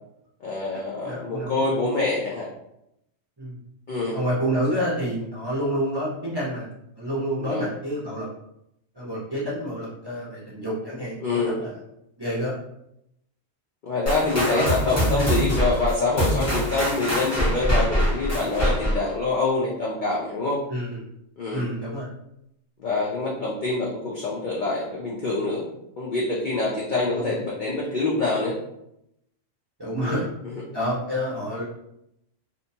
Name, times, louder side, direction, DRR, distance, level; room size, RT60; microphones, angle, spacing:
voice 1, 0.4-2.5 3.9-4.2 7.4-7.7 11.2-11.6 13.8-20.6 21.4-21.6 22.8-25.7 26.0-28.6 30.0-30.2, left 3 dB, 65° left, -4 dB, 0.4 m, -25 dB
voice 2, 1.0-1.8 3.4-3.5 4.1-6.7 7.0-8.3 8.9-11.7 12.2-12.5 14.0-14.1 14.4-14.8 15.2-15.3 20.7-21.0 21.5-22.1 27.1-27.4 29.8-30.2 30.7-31.6, equal, 30° right, -8 dB, 0.5 m, -28 dB
sound 1, 14.1-19.1, equal, 15° left, 0.7 m, -24 dB
2.6 x 2.2 x 2.7 m, 0.81 s
omnidirectional pair, 1.4 m